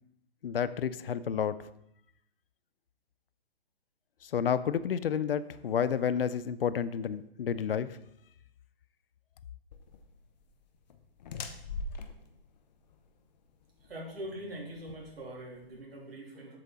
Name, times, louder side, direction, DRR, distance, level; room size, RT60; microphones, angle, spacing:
voice 1, 0.4-1.6 4.2-8.0, left 8 dB, 65° left, 15 dB, 0.6 m, -30 dB
sound 1, 9.7-15.8, left 3 dB, 45° left, 0.9 m, -44 dB
voice 2, 13.8-16.6, right 1 dB, 75° right, -2 dB, 3.1 m, -43 dB
7.6 x 7.5 x 3.8 m, 0.78 s
hypercardioid pair, 145°, 30 cm